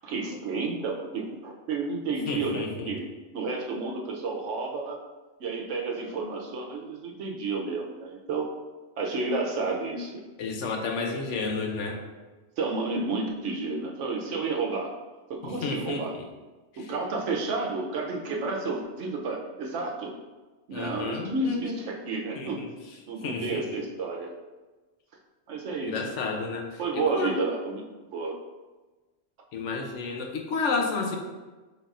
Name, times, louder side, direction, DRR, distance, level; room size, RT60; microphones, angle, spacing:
voice 1, 0.0-3.1 3.3-5.0 5.4-8.5 9.0-10.2 12.6-14.9 15.3-16.1 16.8-20.1 20.7-22.6 23.1-24.3 25.5-25.9 26.8-27.8 28.1-28.3, right 3 dB, 90° right, 1 dB, 1.1 m, -31 dB
voice 2, 2.3-2.9 10.4-12.0 15.4-16.3 16.8-16.9 20.7-21.8 22.4-22.7 23.2-23.7 25.8-27.3 29.5-31.2, left 4 dB, 85° left, 3 dB, 1.0 m, -31 dB
5.2 x 4.0 x 2.4 m, 1.2 s
omnidirectional pair, 1.2 m